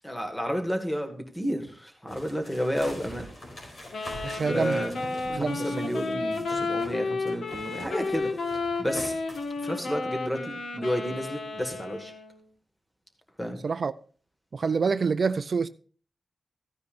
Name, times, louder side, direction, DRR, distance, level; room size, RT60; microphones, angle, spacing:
voice 1, 0.0-3.3 4.4-4.9 5.2-8.3 8.8-9.1 9.6-12.1 13.4-13.6, equal, 10° left, 1.7 m, -31 dB
sound 1, 2.1-7.0 7.3-9.6, left 1 dB, 60° left, 4.8 m, -44 dB
Wind instrument woodwind instrument, 3.9-12.4, left 3 dB, 80° left, 1.5 m, -32 dB
voice 2, 4.2-4.9 5.3-5.9 13.6-13.9 14.5-15.7, right 5 dB, 60° right, 0.4 m, -27 dB
15.0 x 9.5 x 2.5 m
wide cardioid pair, 85°, 0 cm